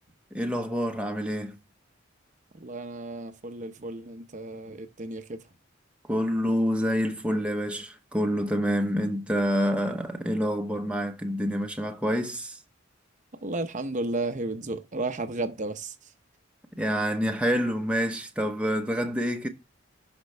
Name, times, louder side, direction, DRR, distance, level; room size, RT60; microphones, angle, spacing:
voice 1, 0.3-1.6 6.1-12.6 16.8-19.5, equal, 5° right, 0.9 m, -27 dB
voice 2, 2.6-5.4 13.4-15.9, right 2 dB, 40° right, 0.8 m, -33 dB
11.5 x 5.2 x 3.3 m
head